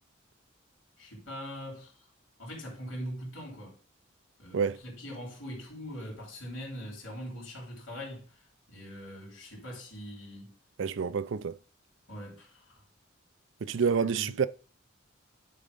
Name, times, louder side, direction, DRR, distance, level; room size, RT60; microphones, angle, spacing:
voice 1, 1.0-2.1 2.4-3.8 4.4-10.6 12.1-12.8 13.6-14.4, equal, 75° left, 3.6 m, -42 dB
voice 2, 10.8-11.6 13.6-14.5, right 6 dB, 65° right, 0.4 m, -28 dB
10.5 x 3.8 x 5.3 m
head